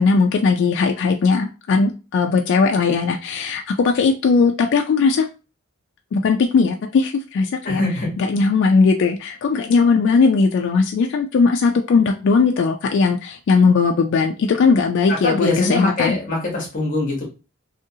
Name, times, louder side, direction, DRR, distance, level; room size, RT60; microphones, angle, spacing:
voice 1, 0.0-5.3 6.1-7.8 8.2-16.2, left 4 dB, 60° left, 3 dB, 0.3 m, -18 dB
voice 2, 7.6-8.1 15.2-17.2, left 2 dB, 40° left, -1 dB, 0.9 m, -22 dB
2.7 x 2.5 x 2.7 m, 0.31 s
head